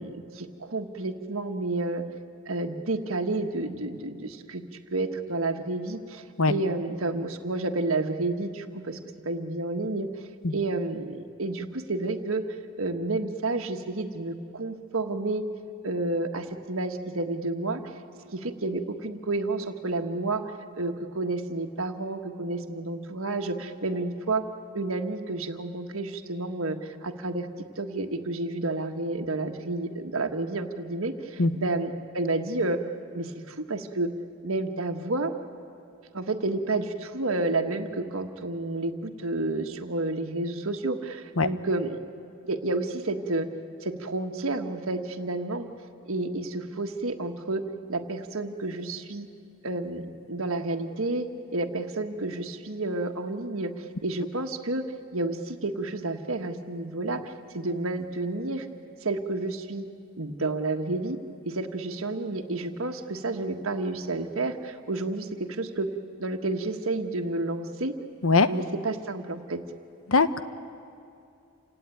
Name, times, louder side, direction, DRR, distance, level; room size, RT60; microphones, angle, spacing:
voice 1, 0.0-2.0 2.4-4.6 4.9-10.1 10.5-12.4 12.8-15.4 15.8-17.8 18.3-20.4 20.8-24.4 24.7-27.5 27.8-32.8 33.1-34.1 34.4-35.3 36.1-42.0 42.4-43.5 43.8-45.7 46.0-47.6 47.9-49.3 49.6-50.0 50.3-54.8 55.1-58.7 59.0-59.8 60.2-61.2 61.4-65.9 66.2-67.9 68.5-69.6, right 2 dB, 70° right, 6 dB, 1.5 m, -30 dB
voice 2, 70.1-70.4, left 3 dB, 75° left, 12 dB, 1.0 m, -20 dB
28.5 x 17.5 x 9.3 m, 2.6 s
head